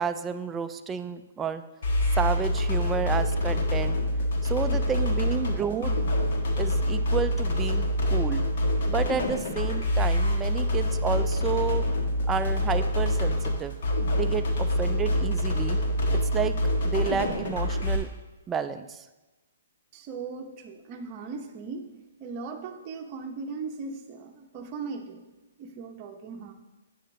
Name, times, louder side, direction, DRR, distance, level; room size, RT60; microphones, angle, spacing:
voice 1, 0.0-1.6 2.1-4.0 4.4-6.0 6.6-8.4 8.9-11.9 12.3-13.8 14.1-15.8 16.1-16.6 16.8-18.1 18.5-19.1, right 7 dB, 10° right, 9 dB, 0.3 m, -31 dB
sound 1, 1.8-18.0, left 1 dB, 60° left, 1.5 m, -26 dB
voice 2, 4.7-5.2 19.9-21.9 22.2-25.2 25.6-26.5, right 4 dB, 30° right, 3 dB, 0.8 m, -38 dB
8.6 x 6.6 x 3.9 m, 1.1 s
hypercardioid pair, 155°, 0 cm